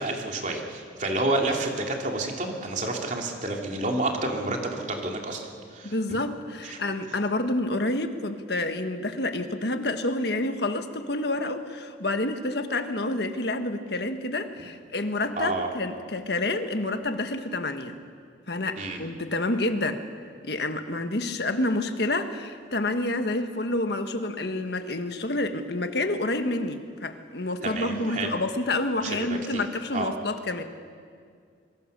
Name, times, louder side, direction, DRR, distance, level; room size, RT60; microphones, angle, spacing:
voice 1, 0.0-6.2 6.6-6.8 15.4-15.7 18.8-19.0 27.6-28.3 29.0-29.6 29.9-30.1, right 2 dB, 40° right, 1 dB, 3.0 m, -29 dB
voice 2, 5.8-18.0 18.5-20.0 20.4-30.6, left 2 dB, 60° left, 7 dB, 1.5 m, -28 dB
25.5 x 23.0 x 6.8 m, 2.1 s
head